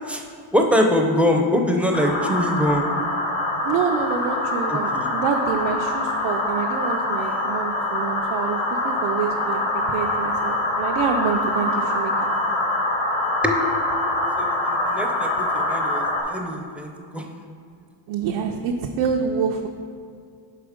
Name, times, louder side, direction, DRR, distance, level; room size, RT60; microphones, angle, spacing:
voice 1, 0.5-2.9 4.7-5.1 13.4-13.6 14.4-17.2, equal, 5° right, 2 dB, 0.5 m, -23 dB
sound 1, 1.9-16.2, left 2 dB, 85° left, 1.5 m, -24 dB
voice 2, 3.6-9.6 9.9-12.3 18.1-19.7, right 6 dB, 85° right, 1 dB, 0.6 m, -26 dB
6.1 x 4.9 x 5.0 m, 2.3 s
cardioid pair, 115°, 46 cm